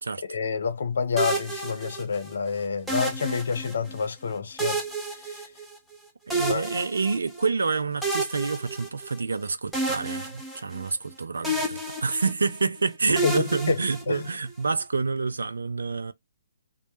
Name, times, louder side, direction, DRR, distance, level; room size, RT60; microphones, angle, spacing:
voice 1, 0.3-4.8 5.1-5.4 6.5-6.7 13.2-13.8 14.1-14.3, left 5 dB, 60° left, 0.5 m, -28 dB
sound 1, 1.2-2.3 2.9-4.0 4.6-6.0 6.3-7.5 8.0-9.4 9.7-11.1 11.4-12.6 13.2-14.5, right 2 dB, ahead, 0.5 m, -31 dB
voice 2, 6.3-16.1, right 4 dB, 70° right, 0.4 m, -28 dB
2.1 x 2.0 x 2.9 m
figure-of-eight pair, 135°, 0 cm